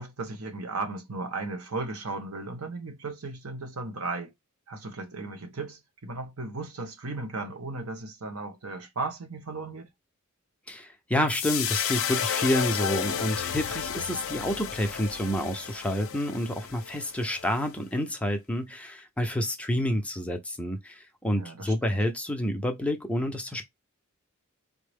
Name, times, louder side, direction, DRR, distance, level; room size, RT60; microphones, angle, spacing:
voice 1, 0.0-4.3 4.7-9.9 21.3-21.9, right 3 dB, 85° right, 1.1 m, -36 dB
voice 2, 10.7-23.6, equal, 5° left, 0.6 m, -29 dB
sound 1, 11.3-17.7, left 9 dB, 65° left, 0.5 m, -32 dB
4.0 x 2.1 x 3.3 m
head